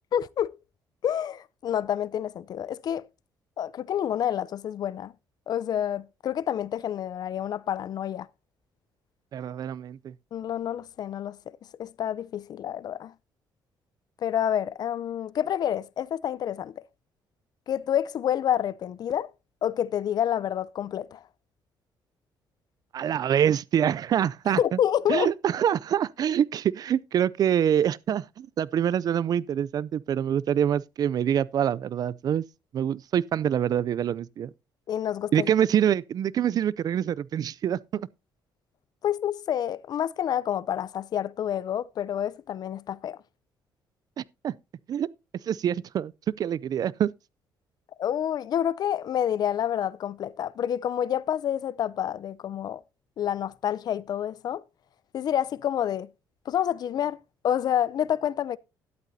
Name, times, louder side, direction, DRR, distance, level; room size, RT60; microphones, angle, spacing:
voice 1, 0.1-0.6 1.0-3.1 3.6-5.1 5.5-8.3 10.3-11.4 11.8-13.1 14.2-16.7 17.7-19.3 19.6-21.2 24.6-25.3 34.9-35.5 39.0-43.2 48.0-52.8 53.2-54.6 55.1-56.1 56.5-57.2 57.4-58.6, left 10 dB, 60° left, 0.5 m, -28 dB
voice 2, 9.3-10.1 22.9-24.8 25.1-32.4 32.7-34.5 35.3-38.1 44.2-44.5 44.9-45.1 45.5-46.1 46.4-47.1, right 9 dB, 55° right, 0.4 m, -25 dB
12.5 x 11.0 x 2.7 m
cardioid pair, 90°, 8 cm